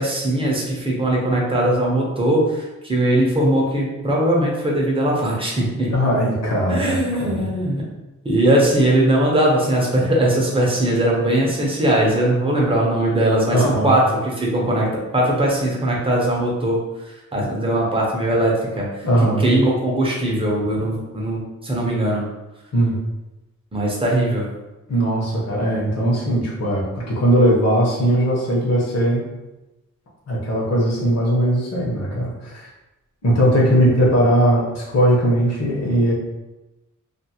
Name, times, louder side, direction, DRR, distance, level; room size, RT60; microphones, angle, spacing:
voice 1, 0.0-5.9 6.7-7.9 8.2-14.9 15.1-16.8 17.3-19.1 19.4-22.3 23.7-24.5, right 1 dB, 15° right, -3 dB, 0.6 m, -20 dB
voice 2, 5.9-7.5 13.5-13.9 19.0-19.4 22.7-23.0 24.9-29.2 30.3-32.7 33.2-36.1, equal, 55° left, -4 dB, 0.8 m, -19 dB
2.5 x 2.4 x 2.8 m, 1.0 s
wide cardioid pair, 155°, 32 cm